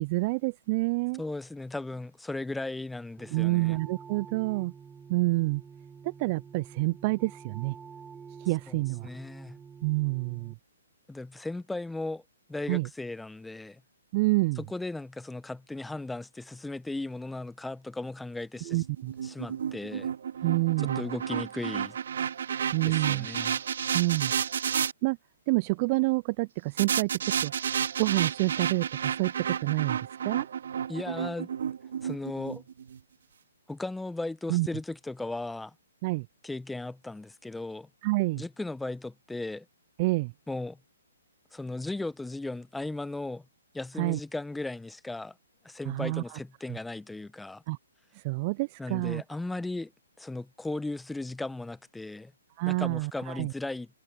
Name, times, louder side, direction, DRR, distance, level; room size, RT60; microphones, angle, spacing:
voice 1, 0.0-1.2 3.3-4.7 5.1-5.6 6.0-7.8 8.4-9.1 9.8-10.5 12.7-12.9 14.1-14.6 18.7-19.1 20.4-21.0 22.7-23.3 23.9-24.3 25.0-25.2 25.5-27.5 28.0-30.5 34.5-34.7 36.0-36.3 38.0-38.4 40.0-40.3 44.0-44.2 45.9-46.2 47.7-47.8 48.2-49.2 52.6-53.5, right 23 dB, 35° right, 0.3 m, -28 dB
voice 2, 1.2-3.8 8.7-9.6 11.1-12.2 12.5-13.8 14.6-18.8 19.2-20.1 20.8-22.0 22.9-23.6 30.9-31.5 32.0-32.6 33.7-35.7 36.4-37.9 38.4-39.6 40.5-40.8 41.5-43.4 43.7-45.3 45.6-47.6 48.8-49.9 50.2-52.3 52.6-53.9, left 2 dB, 5° left, 1.1 m, -36 dB
sound 1, 3.2-10.5, right 6 dB, 10° right, 7.8 m, -48 dB
sound 2, 18.7-24.9 26.8-33.0, right 8 dB, 65° right, 2.4 m, -31 dB
hypercardioid pair, 140°, 0 cm